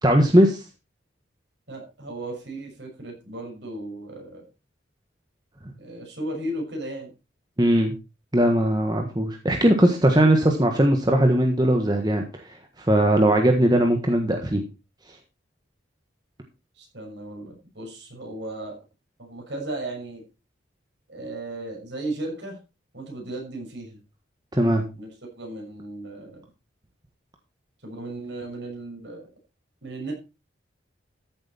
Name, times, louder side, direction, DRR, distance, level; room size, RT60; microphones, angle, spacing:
voice 1, 0.0-0.6 7.6-7.9 8.3-12.4 12.8-14.6 24.5-24.8, right 1 dB, 20° right, 3 dB, 1.4 m, -19 dB
voice 2, 1.7-4.4 5.8-7.1 16.7-18.8 19.2-20.2 21.1-22.6 22.9-24.0 25.0-25.1 25.3-26.4 27.8-29.3 29.8-30.1, right 1 dB, 65° right, 0 dB, 6.2 m, -35 dB
14.0 x 7.7 x 4.3 m, 0.29 s
head